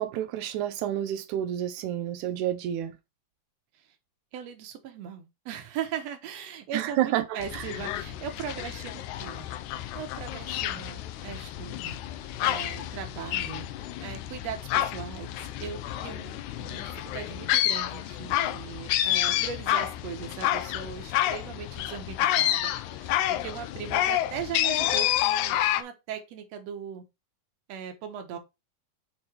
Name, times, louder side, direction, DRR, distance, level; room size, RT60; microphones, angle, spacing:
voice 1, 0.0-3.0 6.7-7.7, right 12 dB, 90° right, 1.7 m, -29 dB
voice 2, 4.3-9.5 9.9-27.0 27.7-28.4, right 8 dB, 65° right, 1.9 m, -39 dB
sound 1, 7.4-25.8, left 13 dB, 90° left, 1.7 m, -29 dB
6.7 x 3.4 x 4.4 m
omnidirectional pair, 4.1 m